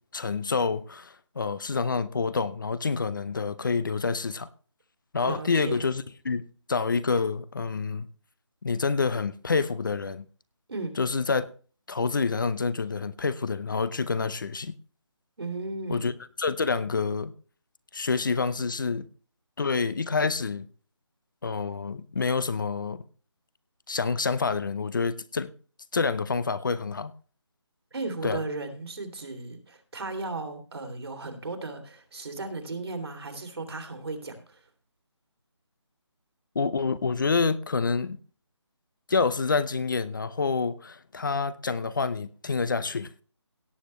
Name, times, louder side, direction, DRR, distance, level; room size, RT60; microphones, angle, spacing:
voice 1, 0.1-4.5 5.1-6.4 6.7-8.1 8.6-10.2 11.0-11.5 11.9-14.8 15.9-16.1 16.4-17.3 17.9-19.1 19.6-20.7 21.4-23.0 23.9-25.5 25.9-27.1 28.2-28.4 36.5-38.2 39.1-43.1, left 4 dB, 45° left, 0.7 m, -27 dB
voice 2, 5.2-5.9 10.7-11.0 15.4-16.1 27.9-34.6, right 3 dB, 60° right, 2.8 m, -35 dB
17.5 x 8.0 x 3.1 m
figure-of-eight pair, 165°, 15 cm